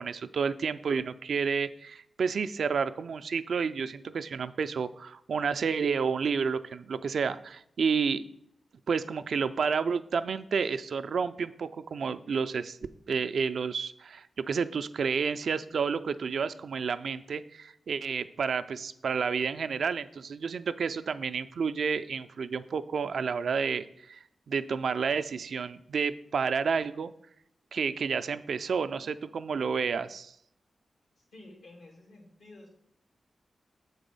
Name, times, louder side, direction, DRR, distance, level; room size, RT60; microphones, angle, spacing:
voice 1, 0.0-8.2 8.9-12.8 13.1-24.2 24.5-27.1 27.7-30.3, right 5 dB, 80° right, 12 dB, 0.3 m, -30 dB
voice 2, 31.2-32.7, left 2 dB, 85° left, -2 dB, 2.5 m, -51 dB
6.9 x 4.0 x 5.3 m, 0.73 s
cardioid pair, 50°, 0 cm